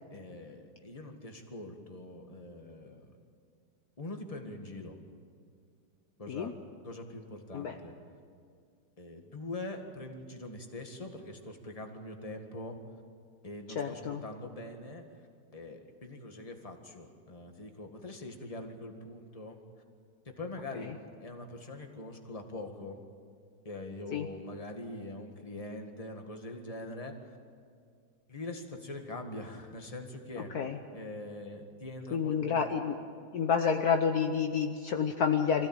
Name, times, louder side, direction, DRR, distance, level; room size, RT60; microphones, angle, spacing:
voice 1, 0.1-3.1 4.0-5.0 6.2-6.6 6.8-8.0 9.0-12.8 13.4-15.2 15.5-19.6 20.3-23.0 23.7-27.4 28.3-30.6 30.9-32.7, left 2 dB, 20° left, 3 dB, 1.8 m, -43 dB
voice 2, 13.7-14.2 24.1-24.3 30.5-30.8 32.1-33.0 33.3-35.7, left 6 dB, 60° left, 5 dB, 1.4 m, -29 dB
24.5 x 16.0 x 8.9 m, 2.2 s
omnidirectional pair, 1.9 m